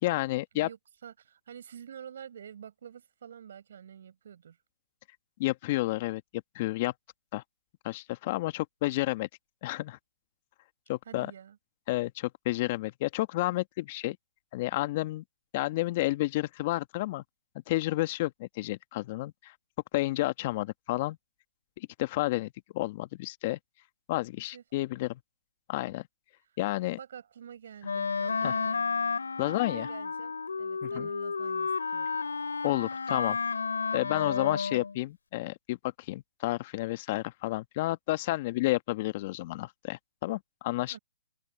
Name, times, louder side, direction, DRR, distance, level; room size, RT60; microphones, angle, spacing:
voice 1, 0.0-0.7 5.4-6.2 6.5-6.9 7.3-7.4 7.8-9.3 9.6-10.0 10.9-11.3 11.9-14.2 14.5-15.2 15.5-17.2 17.7-19.5 19.9-21.2 21.8-23.6 24.1-25.2 25.7-26.0 26.6-27.0 28.4-28.5 29.4-29.9 30.8-31.1 32.6-33.4 33.9-40.9, left 18 dB, 40° left, 1.6 m, -31 dB
voice 2, 0.5-4.6 11.0-11.6 24.5-24.6 27.0-28.8 29.4-32.2 40.9-41.0, right 8 dB, 60° right, 6.7 m, -48 dB
Wind instrument woodwind instrument, 27.8-35.0, left 5 dB, 80° left, 2.9 m, -32 dB
open air
hypercardioid pair, 140°, 0 cm